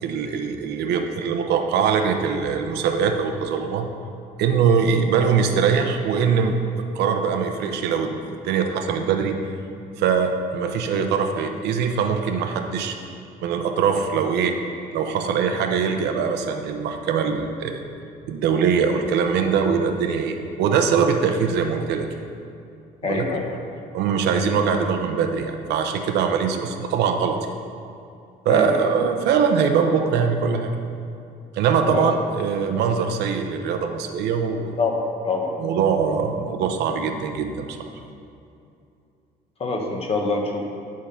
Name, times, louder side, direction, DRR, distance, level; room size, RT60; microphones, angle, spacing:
voice 1, 0.0-3.9 4.4-6.6 6.9-9.4 10.0-13.0 13.4-14.6 14.9-17.8 18.3-22.1 23.0-23.3 23.9-27.4 28.4-30.7 31.5-34.8 35.6-37.8, right 6 dB, 80° right, 5 dB, 0.8 m, -22 dB
voice 2, 23.0-23.5 28.5-29.0 31.9-32.1 34.8-35.5 39.6-40.6, left 3 dB, 35° left, 1 dB, 1.4 m, -25 dB
11.5 x 3.8 x 5.8 m, 2.6 s
cardioid pair, 110°, 17 cm